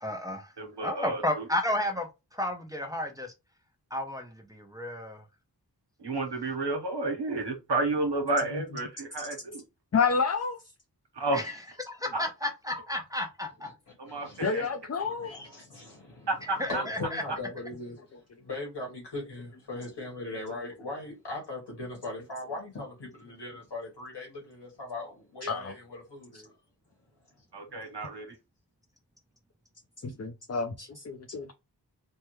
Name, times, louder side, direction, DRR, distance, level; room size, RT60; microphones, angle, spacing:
voice 1, 0.0-0.5 0.8-3.3 3.9-5.2 11.3-11.5 11.9-13.7 16.6-17.2, left 1 dB, 10° right, 0.7 m, -32 dB
voice 2, 0.6-1.5 6.0-9.6 11.1-11.4 12.1-12.3 14.0-14.6 16.3-17.1 27.5-28.3, right 2 dB, 80° right, 1.1 m, -31 dB
voice 3, 9.9-10.6 14.4-15.4 25.4-25.7 30.0-31.5, left 5 dB, 40° left, 0.5 m, -29 dB
voice 4, 13.6-14.7 15.0-18.0 18.4-26.5, left 2 dB, 85° left, 1.5 m, -40 dB
3.5 x 2.1 x 3.0 m
wide cardioid pair, 55°, 41 cm